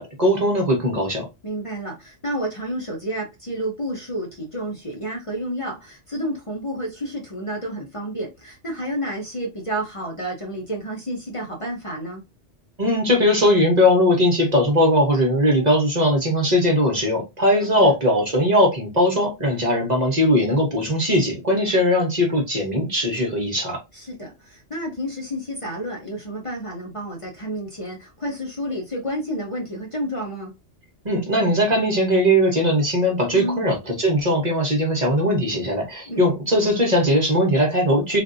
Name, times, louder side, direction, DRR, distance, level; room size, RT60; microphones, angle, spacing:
voice 1, 0.0-1.3 12.8-23.8 31.0-38.2, equal, 40° right, 1.1 m, -19 dB
voice 2, 1.4-12.2 17.6-17.9 23.9-30.5 33.3-33.6 36.1-36.2, equal, 30° left, 0.9 m, -30 dB
3.4 x 2.6 x 2.6 m
omnidirectional pair, 1.2 m